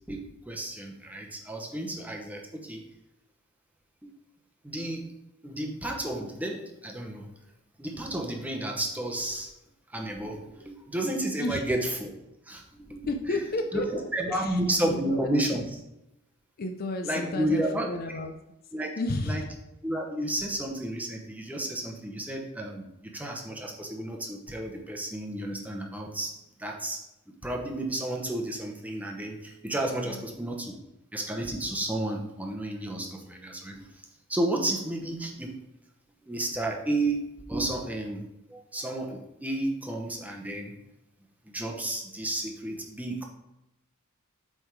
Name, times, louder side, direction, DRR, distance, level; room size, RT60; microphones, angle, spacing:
voice 1, 0.1-2.8 4.0-4.1 4.6-5.1 5.4-7.3 7.8-9.5 9.9-12.1 12.5-13.1 13.7-13.8 14.1-15.6 17.0-17.9 18.7-18.9 19.2-19.4 19.8-26.3 26.6-27.0 27.4-30.8 31.1-33.9 34.3-35.5 36.2-37.2 37.5-40.7 41.4-43.3, right 1 dB, 5° right, 1 dB, 0.9 m, -32 dB
voice 2, 13.1-15.3 16.6-18.3 19.0-19.5 30.0-30.3 35.0-35.1, left 2 dB, 40° left, 4 dB, 0.5 m, -32 dB
8.1 x 3.6 x 4.6 m, 0.89 s
head